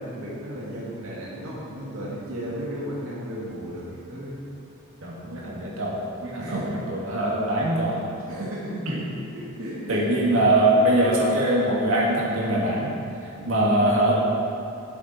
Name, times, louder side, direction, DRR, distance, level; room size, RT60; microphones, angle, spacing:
voice 1, 0.0-4.4 6.4-6.7 8.3-9.1 9.3-10.2 10.7-10.8 13.3-13.6, equal, 85° right, -6 dB, 2.0 m, -34 dB
voice 2, 5.0-6.6 6.9-8.0 8.9-9.0 9.9-12.9 13.5-14.1, right 1 dB, 70° right, -5 dB, 2.2 m, -22 dB
12.5 x 7.3 x 4.4 m, 2.7 s
head